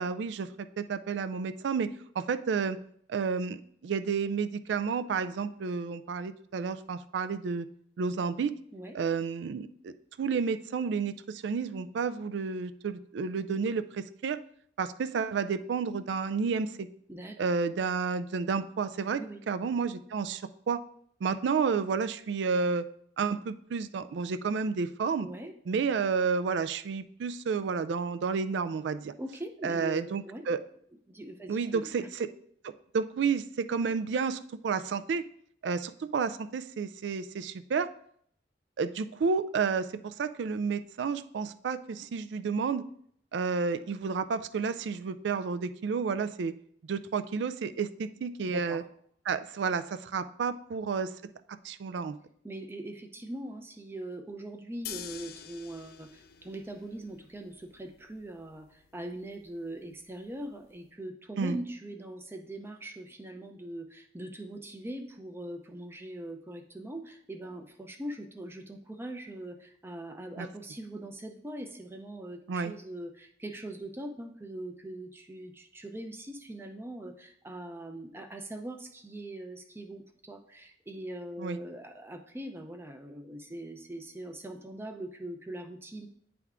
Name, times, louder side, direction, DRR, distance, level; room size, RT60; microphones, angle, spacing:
voice 1, 0.0-2.8 3.1-7.7 8.0-8.5 8.9-9.9 10.2-14.4 14.8-16.9 17.4-19.2 19.5-20.8 21.2-22.9 23.2-25.3 25.7-29.1 29.6-30.6 31.5-32.0 32.6-35.2 35.6-37.9 38.8-42.8 43.3-46.5 46.8-48.8 49.3-51.1 51.6-52.1 61.4-61.6 70.4-70.5 72.5-72.7 81.4-81.6, right 5 dB, 70° right, 13 dB, 0.4 m, -31 dB
voice 2, 25.2-25.5 29.2-30.4 31.1-32.1 48.5-48.8 52.4-86.1, right 1 dB, 15° right, 5 dB, 0.5 m, -41 dB
sound 1, 54.8-60.9, left 9 dB, 55° left, 0.4 m, -48 dB
9.3 x 3.5 x 3.6 m, 0.66 s
head